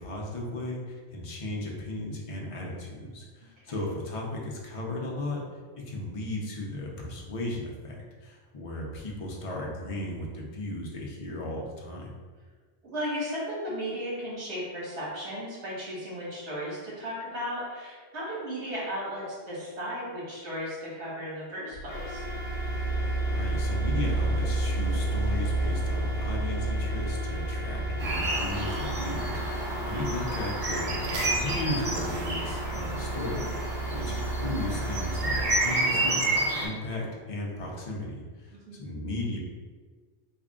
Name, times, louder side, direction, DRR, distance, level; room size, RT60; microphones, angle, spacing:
voice 1, 0.0-5.4 5.7-12.1 23.3-39.4, left 1 dB, 40° left, -2 dB, 0.5 m, -35 dB
voice 2, 12.8-22.2 29.7-30.1 38.5-38.9, equal, 75° right, -7 dB, 1.7 m, -35 dB
sound 1, 21.7-35.4, right 1 dB, 70° left, 1.0 m, -31 dB
sound 2, 28.0-36.7, right 2 dB, 50° right, 0.7 m, -30 dB
3.4 x 2.4 x 3.6 m, 1.5 s
omnidirectional pair, 1.2 m